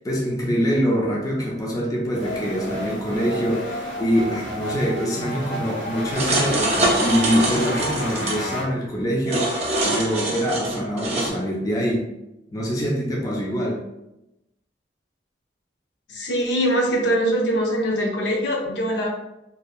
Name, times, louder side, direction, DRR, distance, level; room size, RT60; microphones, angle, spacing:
voice 1, 0.0-12.0 12.5-13.8, equal, 20° left, -3 dB, 0.4 m, -24 dB
sound 1, 2.1-8.6, equal, 85° left, 1.2 m, -31 dB
sound 2, 6.1-8.4 9.3-11.3, right 1 dB, 35° right, 0.5 m, -24 dB
voice 2, 16.1-19.1, equal, 70° left, 0 dB, 0.5 m, -22 dB
2.6 x 2.2 x 2.3 m, 0.90 s
head